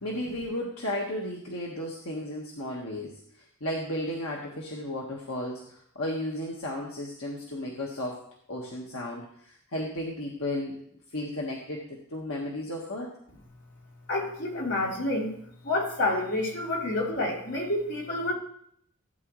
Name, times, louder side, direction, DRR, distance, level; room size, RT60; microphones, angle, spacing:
voice 1, 0.0-10.8 11.1-13.1, left 1 dB, 75° left, -2 dB, 1.6 m, -34 dB
voice 2, 14.1-15.3 15.6-18.3, left 2 dB, 55° left, -4 dB, 3.4 m, -28 dB
16.5 x 9.3 x 3.2 m, 0.67 s
head